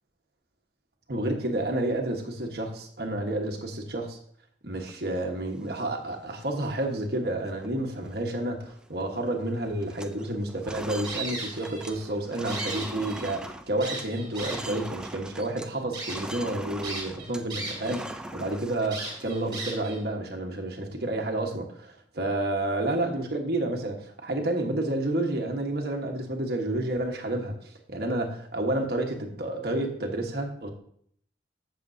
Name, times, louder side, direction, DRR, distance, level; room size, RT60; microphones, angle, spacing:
voice 1, 1.1-4.2 4.6-27.5 27.9-30.7, right 1 dB, 55° right, 3 dB, 1.4 m, -30 dB
sound 1, 4.8-5.9 6.3-6.4 6.6-7.0 7.4-7.7 7.9-9.0 9.3-9.5 9.8-15.7 16.0-19.8, right 1 dB, 5° right, 0.4 m, -41 dB
sound 2, 11.0-12.0 12.3-13.4 13.8-14.8 15.4-15.5 15.9-16.2 16.8-18.0 18.3-18.4 18.9-20.0, right 3 dB, 25° right, 2.8 m, -36 dB
14.0 x 6.9 x 2.8 m, 0.64 s
head